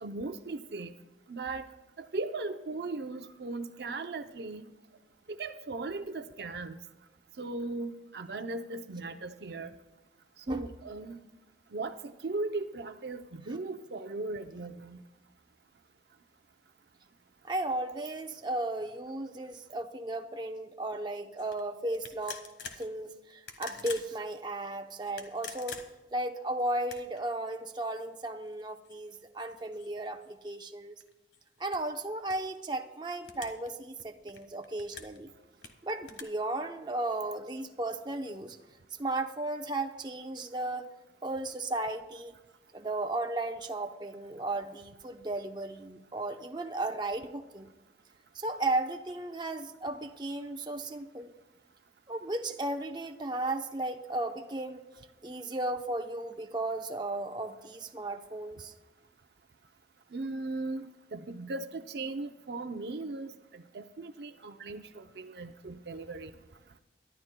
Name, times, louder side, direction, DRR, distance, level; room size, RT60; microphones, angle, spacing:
voice 1, 0.0-0.9 1.3-1.7 2.0-4.6 5.3-6.8 7.4-9.7 10.5-11.2 11.7-15.0 60.1-66.3, right 3 dB, 65° right, 8 dB, 0.6 m, -38 dB
voice 2, 17.4-22.4 22.8-25.8 26.1-31.0 31.6-35.3 35.8-38.6 39.0-40.9 41.2-42.3 42.7-47.7 48.3-51.3 52.1-54.9 55.2-58.7, right 2 dB, 25° right, 4 dB, 0.7 m, -35 dB
sound 1, 21.4-21.6 22.0-22.9 23.4-24.1 25.0-26.2 26.8-27.2 27.9-28.0 28.4-30.6 31.0-32.6 33.2-33.7 34.0-35.2 35.6-36.2, left 6 dB, 90° left, 1.4 m, -46 dB
23.5 x 12.0 x 2.2 m, 1.1 s
head